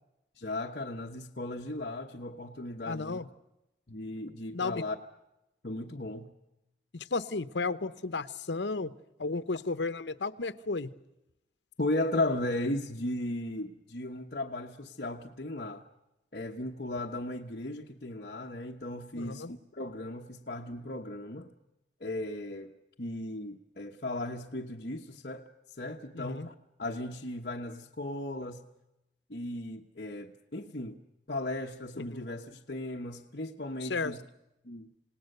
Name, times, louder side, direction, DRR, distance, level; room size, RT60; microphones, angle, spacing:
voice 1, 0.4-3.2 3.9-4.9 5.6-6.3 11.8-15.8 16.3-21.5 22.0-22.7 23.0-25.5 25.8-26.5 26.8-28.6 29.3-31.0 31.3-34.2 34.6-34.9, left 1 dB, 55° left, -1 dB, 1.2 m, -36 dB
voice 2, 2.9-3.3 4.5-4.8 6.9-8.9 9.2-10.9 19.1-19.5 26.1-26.5 32.0-32.3 33.8-34.1, left 3 dB, 80° left, 13 dB, 0.9 m, -33 dB
28.0 x 18.5 x 6.7 m, 0.91 s
head